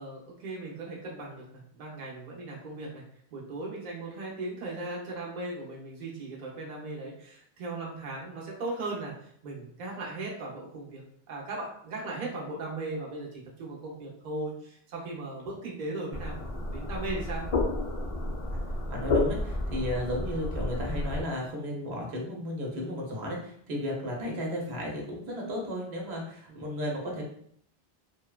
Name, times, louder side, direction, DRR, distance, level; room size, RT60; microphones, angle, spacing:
voice 1, 0.0-1.4 1.7-3.0 3.3-9.1 9.4-17.4 23.9-24.0, right 2 dB, 50° right, -3 dB, 0.8 m, -38 dB
sound 1, 16.1-21.2, left 2 dB, 45° left, 0.5 m, -31 dB
voice 2, 18.9-27.3, left 1 dB, 80° right, -1 dB, 1.0 m, -34 dB
3.0 x 2.1 x 2.3 m, 0.64 s
omnidirectional pair, 1.1 m